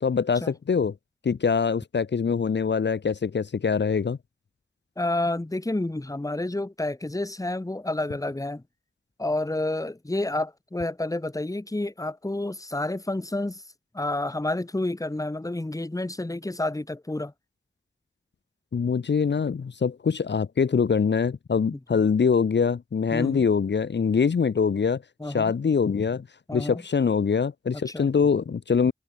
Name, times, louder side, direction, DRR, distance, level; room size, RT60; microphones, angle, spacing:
voice 1, 0.0-0.9 1.2-4.2 18.7-25.0 25.3-26.3 26.5-28.9, left 6 dB, 70° left, 0.7 m, -24 dB
voice 2, 5.0-8.6 9.2-13.6 13.9-17.3 23.1-23.4 25.2-25.5 26.5-26.8 27.9-28.1, left 2 dB, 20° left, 1.1 m, -29 dB
wide cardioid pair, 50°, 19 cm